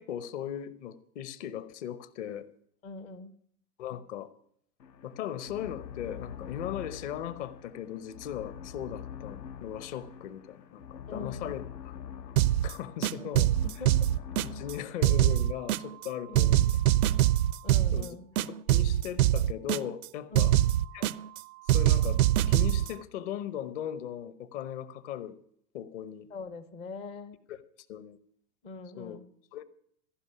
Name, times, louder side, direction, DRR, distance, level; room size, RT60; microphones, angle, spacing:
voice 1, 0.0-2.5 3.8-4.3 5.0-10.8 11.1-12.3 12.6-13.5 14.4-16.8 17.9-20.5 20.9-21.1 21.7-22.2 22.5-25.3 25.7-26.3 27.5-27.6 27.9-28.2 29.0-29.2 29.5-29.6, left 10 dB, 45° left, 15 dB, 1.0 m, -38 dB
voice 2, 2.8-3.3 11.1-11.6 13.1-14.1 16.3-16.6 17.6-18.3 20.3-20.5 26.3-27.4 28.6-29.3, left 4 dB, 15° left, 12 dB, 0.4 m, -43 dB
sound 1, 4.8-14.8, left 8 dB, 80° left, 1.1 m, -44 dB
sound 2, 12.4-12.7 13.0-14.7 15.0-16.1 16.3-18.1 18.4-20.1 20.3-21.4 21.7-22.9, right 13 dB, 60° right, 0.5 m, -24 dB
14.5 x 5.4 x 9.7 m, 0.66 s
hypercardioid pair, 120°, 50 cm